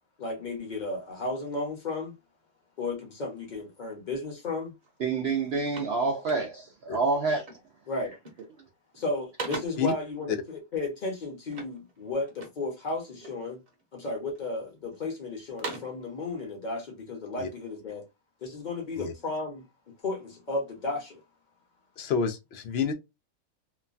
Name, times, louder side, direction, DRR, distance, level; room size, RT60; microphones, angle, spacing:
voice 1, 0.2-2.1 2.8-4.8 7.9-8.2 9.0-13.6 13.9-18.0 18.4-19.6 20.0-21.2, left 2 dB, 35° left, 0.8 m, -34 dB
sound 1, 4.8-5.0 5.3-6.8 7.4-7.8 8.1-8.6 8.9-10.0 11.5-12.7 13.2-13.8 14.4-15.0 15.4-16.1, right 3 dB, 30° right, 0.8 m, -41 dB
voice 2, 5.0-7.4, right 4 dB, 70° right, 0.6 m, -27 dB
voice 3, 22.0-22.9, left 6 dB, 70° left, 0.6 m, -28 dB
3.0 x 2.2 x 2.4 m
omnidirectional pair, 1.6 m